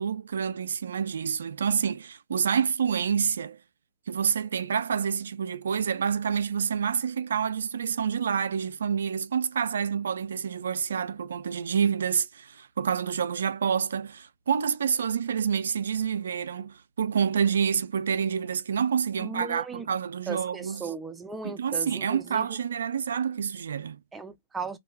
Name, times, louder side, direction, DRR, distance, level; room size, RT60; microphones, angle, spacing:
voice 1, 0.0-3.6 4.1-20.9 21.4-24.0, right 7 dB, 80° right, 0.3 m, -28 dB
voice 2, 19.2-19.8 20.3-22.5 24.1-24.8, right 5 dB, 10° right, 0.5 m, -37 dB
2.3 x 2.2 x 3.2 m
hypercardioid pair, 125°, 0 cm